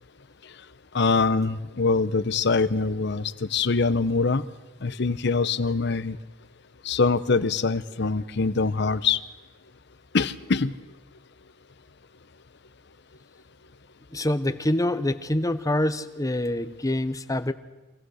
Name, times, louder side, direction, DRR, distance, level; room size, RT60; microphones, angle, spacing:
voice 1, 0.9-4.4 4.8-6.2 6.8-9.2 10.1-10.7, left 4 dB, 65° left, 15 dB, 0.8 m, -24 dB
voice 2, 14.1-17.5, left 1 dB, 20° left, 11 dB, 0.9 m, -26 dB
25.5 x 18.0 x 6.4 m, 1.1 s
head